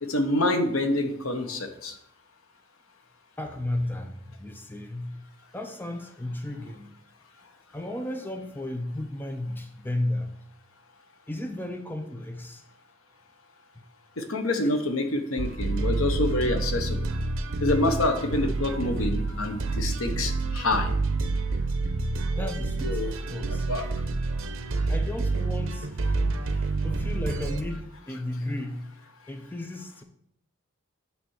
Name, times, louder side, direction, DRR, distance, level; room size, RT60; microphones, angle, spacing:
voice 1, 0.0-1.9 14.2-17.1 17.6-20.9 22.8-23.1 23.4-23.8, left 2 dB, 80° left, 6 dB, 1.0 m, -27 dB
voice 2, 3.4-5.2 5.5-7.0 7.7-10.3 11.3-12.6 13.8-13.9 14.6-14.7 16.6-16.7 22.4-23.7 24.9-28.9 29.3-30.0, left 1 dB, 10° left, 5 dB, 0.5 m, -34 dB
sound 1, 15.4-27.6, right 3 dB, 75° right, 0.8 m, -28 dB
9.2 x 3.4 x 6.3 m, 0.74 s
head